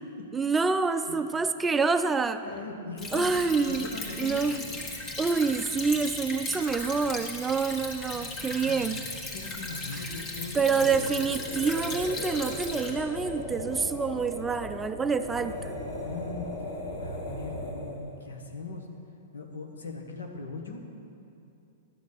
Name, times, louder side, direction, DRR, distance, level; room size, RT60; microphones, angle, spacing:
voice 1, 0.3-2.4 3.1-3.9 4.2-4.6 5.2-9.0 9.9-10.1 10.5-15.8, right 4 dB, 15° right, 10 dB, 0.4 m, -27 dB
voice 2, 2.4-3.3 3.7-4.6 8.6-8.9 9.3-11.0 16.0-16.5 17.0-18.9 19.3-20.8, left 3 dB, 80° left, 3 dB, 1.4 m, -40 dB
Stream / Trickle dribble, 3.0-12.9, left 2 dB, 30° left, 1.8 m, -37 dB
sound 1, 10.8-18.1, left 1 dB, 55° left, 2.8 m, -37 dB
12.0 x 6.4 x 7.0 m, 2.6 s
hypercardioid pair, 105°, 0 cm